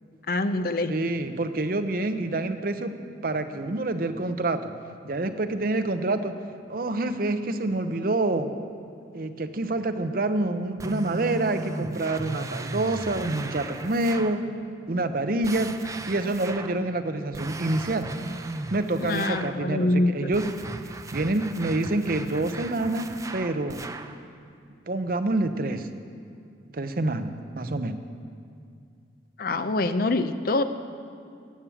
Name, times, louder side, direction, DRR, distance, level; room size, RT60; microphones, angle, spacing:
voice 1, 0.3-1.0 19.0-20.5 29.4-30.6, left 2 dB, 50° left, 10 dB, 0.6 m, -25 dB
voice 2, 0.9-2.9 3.2-4.7 5.0-6.3 6.7-8.5 9.1-14.4 14.9-15.7 16.1-18.1 18.7-20.5 21.1-23.8 24.9-25.9 26.7-28.0, right 2 dB, 50° right, 9 dB, 0.7 m, -27 dB
sound 1, 10.8-14.4 15.4-16.8 17.3-19.6 20.3-24.2, right 2 dB, 20° right, 0.4 m, -37 dB
14.5 x 8.5 x 7.1 m, 2.4 s
head